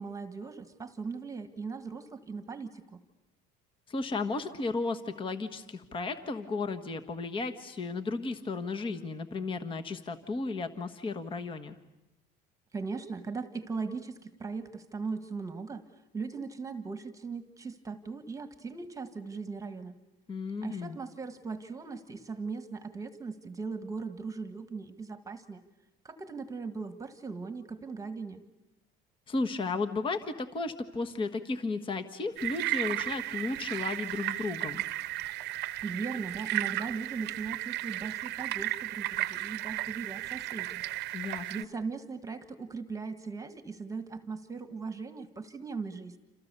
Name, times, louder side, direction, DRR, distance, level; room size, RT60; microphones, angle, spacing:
voice 1, 0.0-3.0 12.7-15.8 16.1-19.9 20.6-25.6 26.0-28.4 35.8-40.8 41.5-46.2, right 4 dB, 15° right, 9 dB, 1.5 m, -39 dB
voice 2, 3.9-11.7 20.3-21.0 29.3-34.8 41.1-41.7, left 3 dB, 25° left, 7 dB, 1.5 m, -34 dB
sound 1, 32.4-41.6, right 16 dB, 60° right, 0.9 m, -34 dB
28.5 x 28.0 x 6.8 m, 0.94 s
cardioid pair, 135°, 20 cm